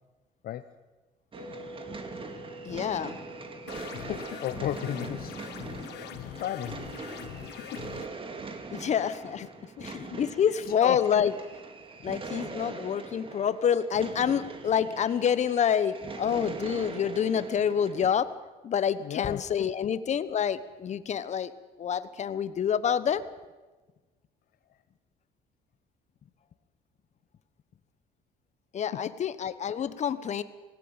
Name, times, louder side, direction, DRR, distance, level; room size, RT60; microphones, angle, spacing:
voice 1, 0.4-0.7 3.9-5.3 5.9-6.9 7.7-7.8 9.8-9.9 10.8-11.3 12.3-12.4 19.0-19.7, left 11 dB, 60° left, 10 dB, 0.8 m, -35 dB
sound 1, 1.3-18.1, right 4 dB, 30° right, 2.2 m, -42 dB
sound 2, 1.3-11.4, equal, 90° right, 5.5 m, -51 dB
voice 2, 2.6-3.2 8.7-11.3 12.0-18.3 18.6-21.5 21.8-23.2 28.7-30.4, left 8 dB, 45° left, 14 dB, 1.1 m, -27 dB
sound 3, 3.7-8.1, left 12 dB, 80° left, 1.2 m, -43 dB
19.0 x 16.5 x 8.9 m, 1.3 s
cardioid pair, 110°, 17 cm